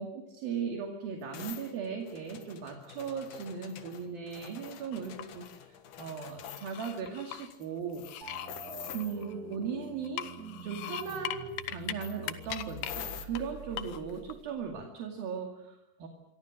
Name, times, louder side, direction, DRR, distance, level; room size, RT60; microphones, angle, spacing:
voice 1, 0.0-8.1 8.9-10.3 10.6-16.1, right 6 dB, 65° right, 2 dB, 4.0 m, -38 dB
sound 1, 1.3-7.1 7.5-7.7 7.9-9.2 10.7-11.2 12.0-13.3, left 9 dB, 60° left, 2.7 m, -46 dB
sound 2, 4.9-5.6 6.0-7.5 8.0-9.6 10.0-11.9 12.2-12.9 13.3-13.4 13.8-14.3, left 13 dB, 75° left, 2.9 m, -40 dB
sound 3, 8.2-14.9, right 4 dB, 30° right, 2.1 m, -46 dB
27.5 x 24.0 x 6.5 m, 0.86 s
omnidirectional pair, 4.6 m